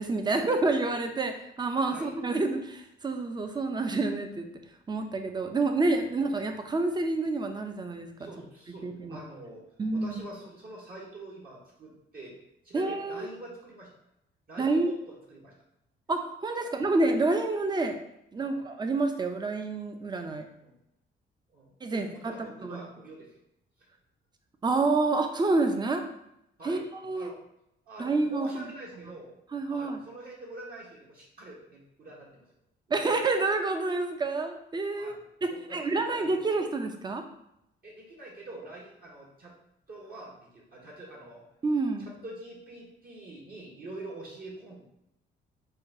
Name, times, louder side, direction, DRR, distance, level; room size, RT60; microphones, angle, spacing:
voice 1, 0.0-4.5 4.9-8.3 8.8-9.2 9.8-10.1 12.7-13.3 14.6-14.9 16.1-18.0 18.3-20.5 21.8-22.3 22.6-22.8 24.6-26.0 26.6-27.3 28.0-28.7 29.5-30.0 32.9-37.2 41.6-42.1, right 3 dB, 20° right, 6 dB, 0.5 m, -28 dB
voice 2, 8.2-9.6 9.9-12.4 12.6-13.9 14.5-15.5 16.6-16.7 18.4-18.6 20.6-20.7 21.5-23.3 26.6-26.9 27.1-27.4 27.9-29.3 29.7-32.5 32.9-33.2 34.9-35.2 35.5-36.4 37.8-39.5 39.9-41.4 42.2-44.8, right 2 dB, 50° right, -3 dB, 1.1 m, -45 dB
5.5 x 2.3 x 2.7 m, 0.81 s
cardioid pair, 90°, 20 cm